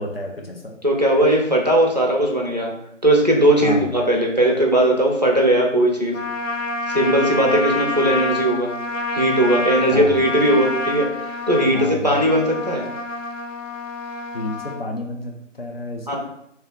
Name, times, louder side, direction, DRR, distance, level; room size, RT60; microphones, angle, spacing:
voice 1, 0.0-0.8 3.6-3.9 9.9-10.2 11.7-12.1 14.3-16.2, left 1 dB, 50° left, 1 dB, 0.8 m, -30 dB
voice 2, 0.8-2.7 3.0-6.2 6.9-8.7 9.1-12.9 16.1-16.2, right 1 dB, 35° right, -1 dB, 0.5 m, -18 dB
Trumpet, 6.1-14.8, left 2 dB, 85° left, 0.6 m, -27 dB
3.1 x 2.8 x 3.8 m, 0.76 s
figure-of-eight pair, 175°, 38 cm